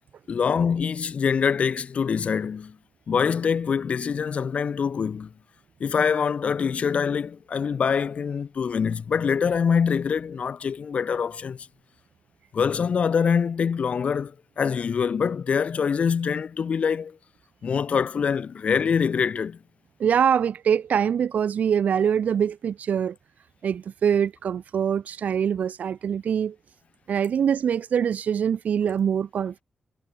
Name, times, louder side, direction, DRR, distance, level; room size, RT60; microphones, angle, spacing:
voice 1, 0.3-2.7 3.1-5.3 5.8-11.7 12.5-17.2 17.6-19.6, left 6 dB, 55° left, 6.8 m, -24 dB
voice 2, 20.0-23.2 23.6-26.6 27.1-29.6, right 8 dB, 75° right, 2.3 m, -24 dB
wide cardioid pair, 175°, 3 cm